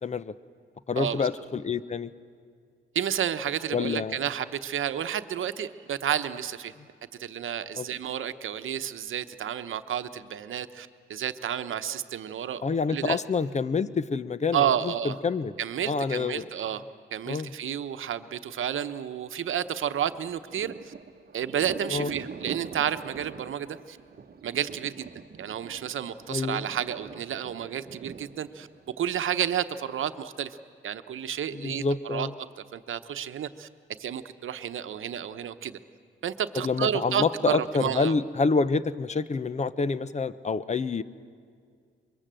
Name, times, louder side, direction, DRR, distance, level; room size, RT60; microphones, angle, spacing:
voice 1, 0.0-0.3 0.9-2.1 3.7-4.2 7.8-7.9 12.6-14.6 15.0-15.5 15.9-16.4 17.3-17.5 21.9-22.1 26.3-26.6 31.5-32.3 36.6-41.0, left 4 dB, 35° left, 15 dB, 0.7 m, -27 dB
voice 2, 1.0-1.3 2.9-6.7 7.2-12.6 12.9-13.2 14.5-15.2 15.6-16.8 17.1-20.9 21.3-24.0 24.4-25.1 25.4-28.7 29.0-30.6 30.8-32.3 32.6-33.7 34.0-35.8 36.2-38.1, right 9 dB, 75° right, 11 dB, 1.0 m, -31 dB
Thunder, 20.1-29.5, right 6 dB, 50° right, 1.0 m, -44 dB
24.0 x 22.5 x 7.7 m, 2.2 s
cardioid pair, 95°, 21 cm